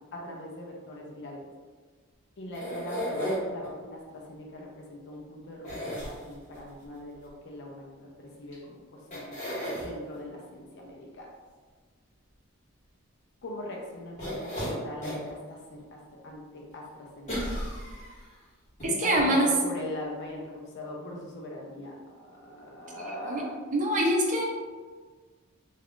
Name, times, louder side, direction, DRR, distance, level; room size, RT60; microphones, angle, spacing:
voice 1, 0.0-1.5 2.4-9.4 9.8-11.3 13.4-17.5 18.8-23.5, left 1 dB, 55° left, -2 dB, 0.4 m, -41 dB
sound 1, 2.5-3.7 5.6-6.6 8.5-8.6 9.1-9.9 14.2-15.3 15.8-15.9 17.3-18.3 18.8-18.9 19.2-19.3, equal, 35° left, 1.2 m, -34 dB
voice 2, 18.8-19.5 23.2-23.4 23.7-24.4, right 1 dB, 35° right, 0 dB, 0.5 m, -24 dB
2.3 x 2.3 x 3.6 m, 1.4 s
head